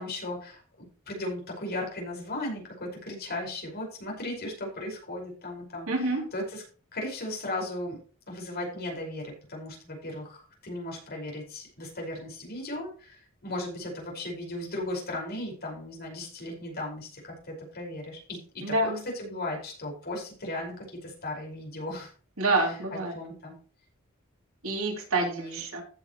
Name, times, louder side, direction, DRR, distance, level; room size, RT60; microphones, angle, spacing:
voice 1, 0.0-5.9 6.3-6.6 6.9-8.0 8.3-22.1 23.1-23.5 25.2-25.6, left 1 dB, 50° left, 0 dB, 5.3 m, -36 dB
voice 2, 5.9-6.3 18.6-19.0 22.4-23.1 24.6-25.8, right 2 dB, 85° right, 1 dB, 3.1 m, -27 dB
15.0 x 7.1 x 3.1 m, 0.38 s
head